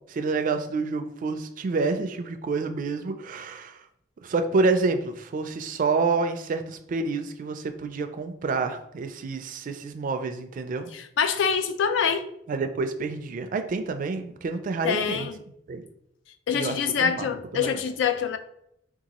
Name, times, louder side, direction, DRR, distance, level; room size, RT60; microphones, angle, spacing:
voice 1, 0.1-3.9 4.2-10.9 12.5-15.3 15.7-15.9 16.5-17.8, right 4 dB, 45° right, 0.3 m, -28 dB
voice 2, 10.9-12.3 14.8-15.4 16.5-18.4, left 6 dB, 90° left, 0.4 m, -25 dB
3.8 x 2.4 x 2.9 m
head